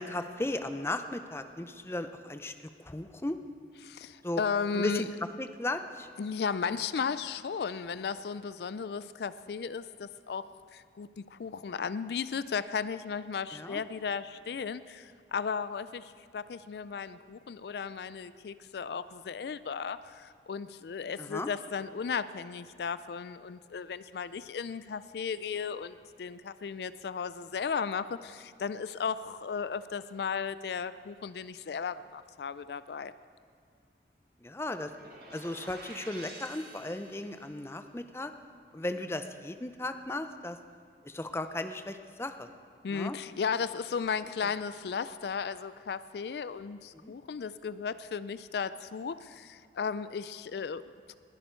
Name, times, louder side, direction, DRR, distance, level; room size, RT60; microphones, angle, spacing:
voice 1, 0.0-3.4 4.2-4.4 4.7-5.1 5.4-6.1 13.5-13.8 21.2-21.5 34.4-34.9 35.3-38.3 38.7-40.6 41.0-42.5 42.9-43.2 46.9-47.1, left 2 dB, 15° left, 9 dB, 0.5 m, -36 dB
voice 2, 3.8-5.0 6.2-10.5 10.7-33.1 42.8-51.1, left 6 dB, 70° left, 15 dB, 0.4 m, -35 dB
sound 1, 34.8-37.6, right 2 dB, 55° right, 2.1 m, -49 dB
20.5 x 11.0 x 4.5 m, 2.2 s
head